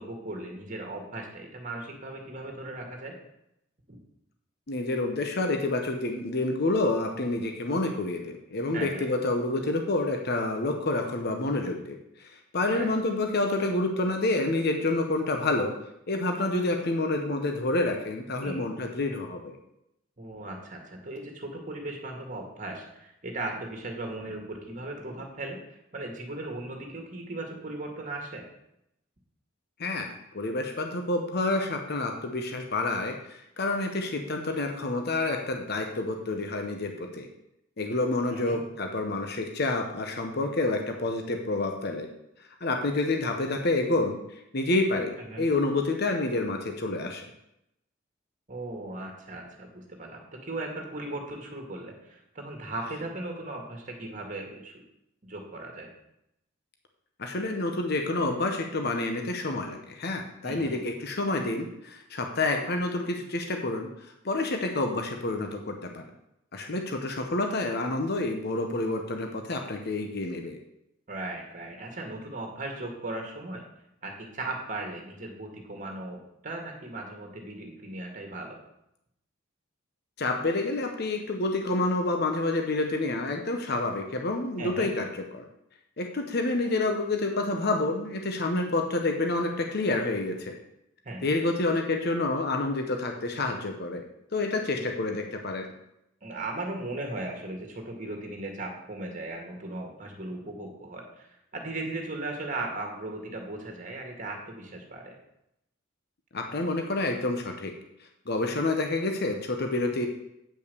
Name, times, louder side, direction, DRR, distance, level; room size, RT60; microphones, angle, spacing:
voice 1, 0.0-3.2 8.7-9.1 12.7-12.9 18.4-18.7 20.2-28.5 38.3-38.6 45.3-45.4 48.5-54.8 55.2-55.9 60.4-60.8 71.1-73.6 74.0-78.6 84.6-84.9 91.0-91.3 94.8-94.9 96.2-101.3 101.5-105.2, right 2 dB, 40° right, 2 dB, 2.0 m, -37 dB
voice 2, 4.7-15.8 16.1-19.6 29.8-37.3 37.8-42.1 42.6-47.3 57.2-66.0 66.5-70.6 80.2-85.4 86.0-90.6 91.2-94.0 94.3-95.7 106.3-107.7 108.3-110.1, left 2 dB, 55° left, 4 dB, 0.9 m, -28 dB
8.9 x 5.6 x 6.7 m, 0.82 s
head